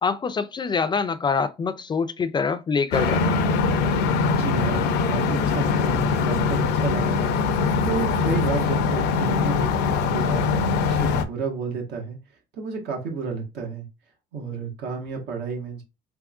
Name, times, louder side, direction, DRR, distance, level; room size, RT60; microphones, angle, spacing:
voice 1, 0.0-3.2, left 5 dB, 25° left, 0.3 m, -25 dB
sound 1, 2.9-11.2, left 5 dB, 85° left, 0.6 m, -22 dB
voice 2, 4.2-7.2 7.8-12.2 12.5-13.9 14.3-15.8, right 5 dB, 80° right, 1.5 m, -31 dB
3.6 x 3.4 x 2.4 m
cardioid pair, 110°, 17 cm